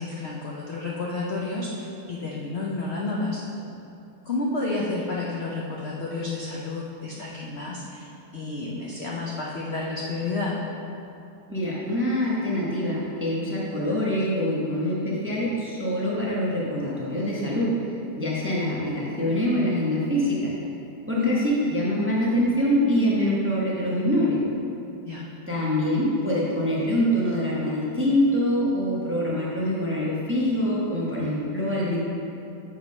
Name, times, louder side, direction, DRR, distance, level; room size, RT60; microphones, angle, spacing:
voice 1, 0.0-3.4 4.3-10.6 21.1-21.3 25.0-25.2, left 3 dB, 70° left, -4 dB, 0.6 m, -30 dB
voice 2, 11.5-17.9 18.2-20.5 21.1-24.4 25.5-32.0, equal, 10° right, -6 dB, 0.7 m, -24 dB
7.2 x 3.7 x 5.2 m, 2.9 s
omnidirectional pair, 2.0 m